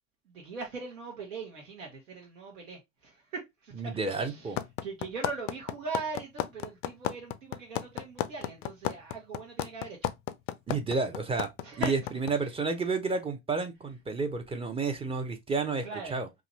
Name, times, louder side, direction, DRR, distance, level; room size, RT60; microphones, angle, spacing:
voice 1, 0.3-3.7 4.1-4.6 4.8-10.1 11.6-12.1 15.8-16.2, right 4 dB, 80° right, 1.0 m, -40 dB
voice 2, 3.8-4.6 10.7-11.5 11.8-16.3, right 4 dB, 15° right, 0.5 m, -31 dB
sound 1, 4.6-12.3, left 12 dB, 70° left, 0.5 m, -31 dB
2.7 x 2.4 x 3.0 m
hypercardioid pair, 75°, 39 cm